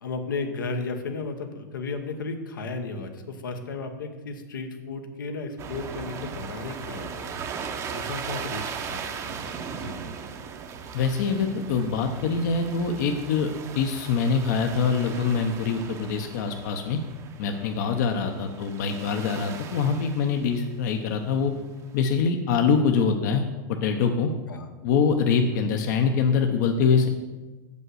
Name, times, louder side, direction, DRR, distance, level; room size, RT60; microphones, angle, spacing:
voice 1, 0.0-7.3 7.9-9.4 9.7-10.1 16.1-16.3 18.1-18.4 24.5-24.7 25.5-25.6, left 3 dB, 90° left, 5 dB, 1.0 m, -34 dB
sound 1, 5.6-20.9 21.6-21.8, right 6 dB, 30° right, 0.7 m, -38 dB
voice 2, 10.9-13.5 13.7-17.0 17.4-21.5 21.9-24.3 24.8-27.1, left 5 dB, 65° left, 5 dB, 0.8 m, -24 dB
6.7 x 5.3 x 6.3 m, 1.2 s
hypercardioid pair, 125°, 11 cm